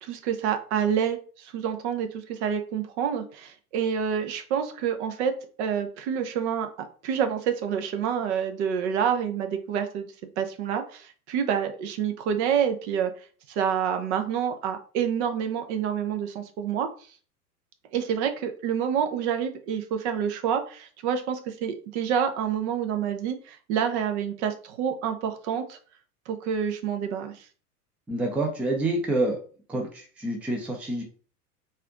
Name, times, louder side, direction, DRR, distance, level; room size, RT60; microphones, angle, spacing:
voice 1, 0.0-10.1 10.4-13.1 13.6-16.9 17.9-25.8 26.3-27.3, right 8 dB, 45° right, 7 dB, 0.8 m, -28 dB
voice 2, 28.1-29.4 29.7-31.0, right 2 dB, 5° right, 2 dB, 0.5 m, -27 dB
4.2 x 2.6 x 3.7 m, 0.41 s
figure-of-eight pair, 90°, 46 cm